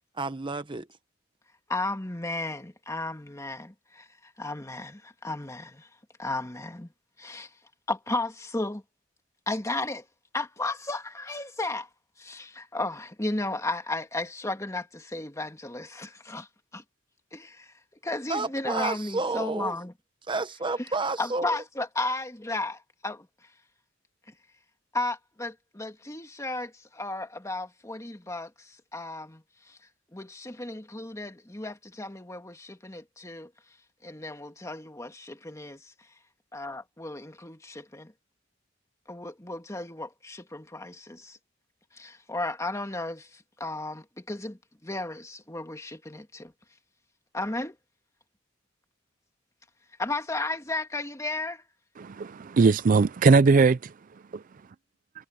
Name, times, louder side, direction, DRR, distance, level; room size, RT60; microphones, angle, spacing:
voice 1, 0.2-0.9 18.3-19.8 20.3-21.6, right 3 dB, 25° right, 0.9 m, -30 dB
voice 2, 1.7-5.9 6.2-6.9 7.2-7.5 7.9-8.8 9.5-10.0 10.3-11.9 12.2-16.8 17.3-17.7 18.0-19.9 20.8-20.9 21.2-23.3 24.9-29.8 30.1-33.5 34.0-35.9 36.5-38.1 39.1-41.4 41.9-46.5 47.3-47.8 50.0-51.6, left 2 dB, 15° left, 1.9 m, -34 dB
voice 3, 52.0-53.9 54.3-54.4, right 4 dB, 45° right, 0.4 m, -20 dB
head